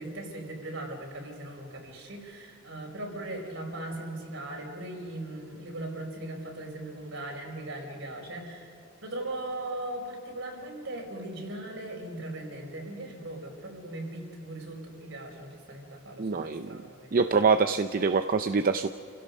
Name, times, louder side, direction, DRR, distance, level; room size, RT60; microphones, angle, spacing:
voice 1, 0.0-8.7 9.0-17.3, right 1 dB, 70° right, 1 dB, 4.7 m, -39 dB
voice 2, 16.2-16.8 17.1-18.9, right 4 dB, 45° right, 9 dB, 0.5 m, -25 dB
29.0 x 17.0 x 5.3 m, 2.7 s
head